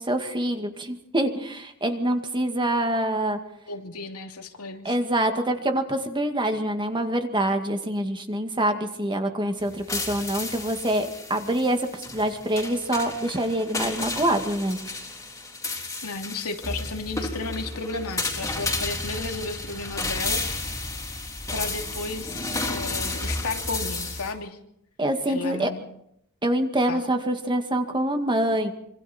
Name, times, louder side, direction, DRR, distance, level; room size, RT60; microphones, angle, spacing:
voice 1, 0.0-3.4 4.8-14.8 25.0-25.7 26.4-28.7, right 1 dB, 20° right, 5 dB, 2.1 m, -25 dB
voice 2, 3.7-4.9 16.0-20.4 21.5-24.6 25.3-25.8 26.9-27.1, left 3 dB, 85° left, 3 dB, 2.8 m, -33 dB
sound 1, 9.6-24.3, left 2 dB, 15° left, 3.9 m, -32 dB
26.5 x 25.5 x 4.4 m, 0.73 s
head